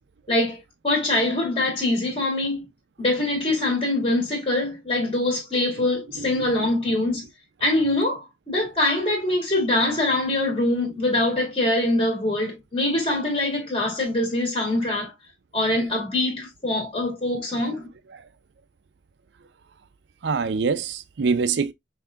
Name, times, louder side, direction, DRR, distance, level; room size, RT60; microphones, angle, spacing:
voice 1, 0.3-0.6 0.8-2.6 3.0-7.2 7.6-15.1 15.5-17.9, left 1 dB, 30° left, 1.8 m, -23 dB
voice 2, 6.1-6.5 20.2-21.7, right 5 dB, 70° right, 0.4 m, -25 dB
5.6 x 2.7 x 2.3 m
head